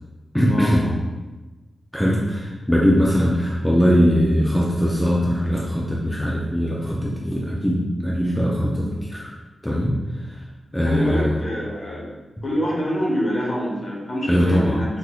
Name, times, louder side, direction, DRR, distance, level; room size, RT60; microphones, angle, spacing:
voice 1, 0.3-0.9 1.9-9.3 9.6-10.4 10.7-11.4 14.3-14.8, equal, 5° left, -4 dB, 0.4 m, -21 dB
voice 2, 10.8-12.1 12.4-14.9, equal, 45° left, -4 dB, 0.9 m, -25 dB
5.8 x 2.6 x 2.3 m, 1.2 s
wide cardioid pair, 165°, 0 cm